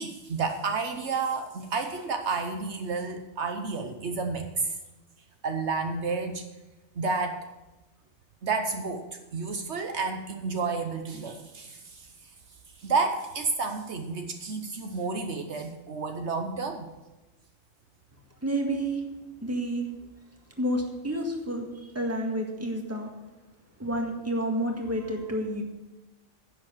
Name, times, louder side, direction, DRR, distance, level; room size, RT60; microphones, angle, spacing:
voice 1, 0.0-4.8 5.4-6.4 6.9-7.4 8.4-12.1 12.8-16.9, right 4 dB, 70° right, 5 dB, 1.2 m, -31 dB
voice 2, 18.4-19.0 19.4-19.9 20.6-23.1 23.8-25.6, right 1 dB, 10° right, 1 dB, 1.8 m, -29 dB
10.5 x 7.3 x 7.3 m, 1.0 s
omnidirectional pair, 1.2 m